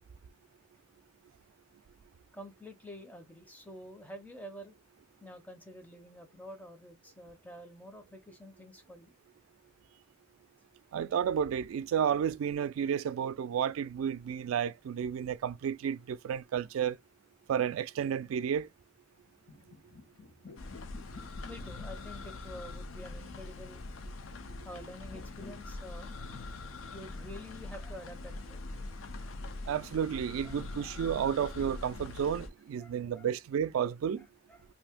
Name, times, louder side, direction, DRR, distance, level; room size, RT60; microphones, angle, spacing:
voice 1, 2.3-4.8 5.2-9.1 21.5-23.9 24.6-26.1 26.9-28.6 30.4-31.0 32.8-33.3 34.2-34.6, equal, 10° left, 0.5 m, -48 dB
voice 2, 10.9-17.0 17.5-18.7 29.7-34.3, right 8 dB, 90° right, 0.3 m, -32 dB
sound 1, 19.1-28.8, left 3 dB, 60° left, 1.1 m, -55 dB
sound 2, 20.6-32.5, left 2 dB, 90° left, 0.5 m, -43 dB
2.7 x 2.5 x 3.4 m
head